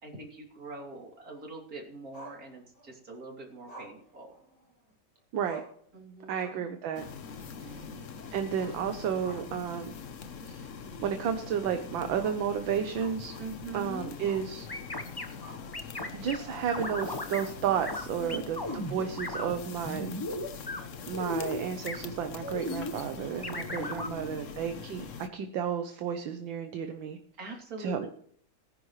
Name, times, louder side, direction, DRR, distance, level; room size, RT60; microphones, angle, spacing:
voice 1, 0.0-4.3 5.9-6.5 7.3-8.1 13.4-14.2 18.2-18.7 23.4-24.4 27.4-28.1, right 3 dB, 45° right, 0 dB, 3.5 m, -44 dB
Growling, 2.1-2.9 3.7-4.9 5.2-5.3 5.4-5.9 6.2-6.7 7.0-7.1 8.5-9.7 10.0-10.1 10.7-10.8 12.1-13.7 14.2-14.5 14.8-15.8 16.4-16.8 17.3-17.7 18.6-19.2, right 2 dB, 65° left, 6.3 m, -49 dB
voice 2, 6.3-7.0 7.6-7.8 8.3-9.9 10.5-10.7 11.0-13.3 13.7-14.7 16.1-20.2 21.1-27.2 27.8-28.1, right 8 dB, 70° right, 7 dB, 1.7 m, -32 dB
sound 1, 6.9-25.3, left 6 dB, 50° left, 1.0 m, -43 dB
sound 2, 14.7-15.2 15.7-16.4 16.7-17.4 17.8-18.0 18.3-19.5 19.8-20.8 21.1-21.6 21.9-22.0 22.4-22.9 23.4-24.1, left 1 dB, 15° left, 0.8 m, -35 dB
19.5 x 10.5 x 3.2 m, 0.62 s
omnidirectional pair, 2.2 m